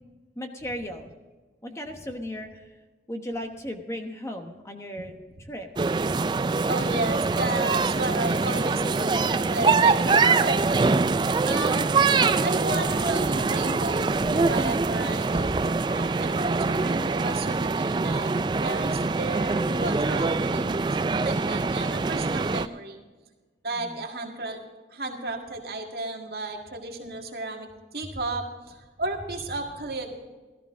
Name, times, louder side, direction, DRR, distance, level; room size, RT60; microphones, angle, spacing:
voice 1, 0.4-1.1 1.6-2.7 3.1-5.2 5.5-5.7 21.8-22.0 23.7-24.0, equal, 15° left, 4 dB, 1.1 m, -36 dB
sound 1, 5.8-22.7, right 4 dB, 25° right, 0.3 m, -24 dB
voice 2, 6.7-11.9 12.2-18.3 18.6-23.0 23.6-30.1, right 2 dB, 65° right, 2 dB, 2.0 m, -33 dB
14.5 x 14.0 x 3.7 m, 1.3 s
head